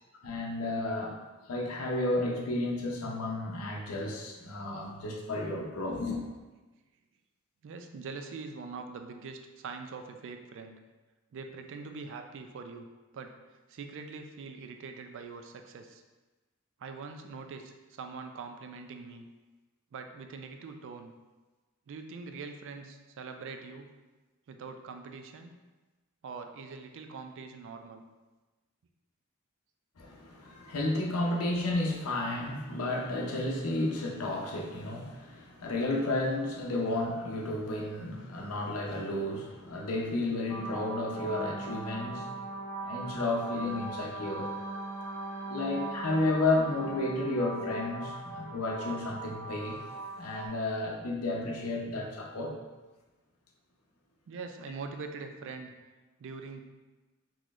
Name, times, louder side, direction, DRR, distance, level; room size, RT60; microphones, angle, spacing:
voice 1, 0.2-1.1 1.5-6.2 30.0-42.3 42.8-44.5 45.5-49.8 50.2-52.6, left 2 dB, 80° left, -1 dB, 0.6 m, -32 dB
voice 2, 7.6-10.8 11.3-12.9 13.1-13.4 13.7-16.0 16.8-19.2 19.9-21.1 21.9-23.9 24.5-25.5 26.2-28.0 54.3-55.7 56.2-56.6, right 4 dB, 60° right, 6 dB, 0.3 m, -43 dB
sound 1, 40.5-50.5, right 2 dB, ahead, 0.8 m, -39 dB
3.9 x 3.0 x 2.4 m, 1.2 s
head